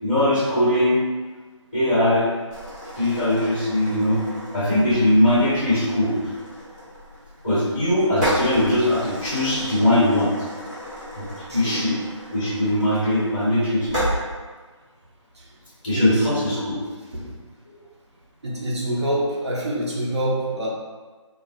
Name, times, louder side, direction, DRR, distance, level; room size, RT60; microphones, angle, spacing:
voice 1, 0.0-1.0 1.7-2.3 3.0-4.2 4.5-6.2 7.4-10.3 11.1-11.3 11.5-11.9 12.3-13.9 15.8-16.5, left 1 dB, 15° left, -11 dB, 1.1 m, -20 dB
sound 1, 2.5-14.1, equal, 10° right, 0.7 m, -33 dB
voice 2, 11.5-12.0 15.3-15.5 15.9-16.7 17.1-17.3 18.4-20.7, right 1 dB, 60° right, -5 dB, 0.8 m, -27 dB
2.3 x 2.3 x 3.0 m, 1.4 s
figure-of-eight pair, 160°, 16 cm